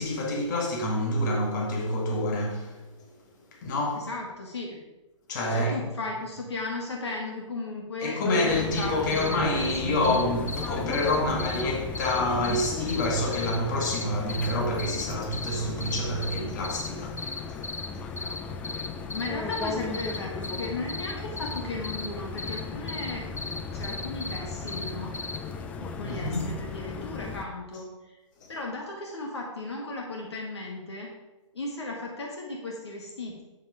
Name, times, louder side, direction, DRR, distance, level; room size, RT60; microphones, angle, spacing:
voice 1, 0.0-2.8 3.6-4.1 5.3-5.9 8.0-18.1 18.8-18.9 26.0-26.5 28.4-28.5, left 1 dB, 35° left, 2.2 m, -28 dB
voice 2, 3.9-4.8 5.5-10.0 19.1-23.4 23.7-25.1 25.8-28.2 28.5-31.1 31.5-33.4, left 2 dB, 55° left, 1.9 m, -36 dB
sound 1, 8.5-27.4, left 5 dB, 10° left, 0.4 m, -36 dB
sound 2, 8.7-8.9 9.1-9.3 9.6-9.8 10.0-10.2 10.5-10.7 10.9-11.6 11.9-12.2 12.4-13.1 13.3-14.5 14.8-15.0 15.3-15.6 15.8-16.9 17.2-17.9 18.2-18.4 18.6-20.2 20.4-22.1 22.4-22.6 22.9-23.1 23.4-24.4 24.7-25.4, left 2 dB, 85° left, 1.1 m, -35 dB
8.1 x 8.0 x 4.9 m
figure-of-eight pair, 130°, 16 cm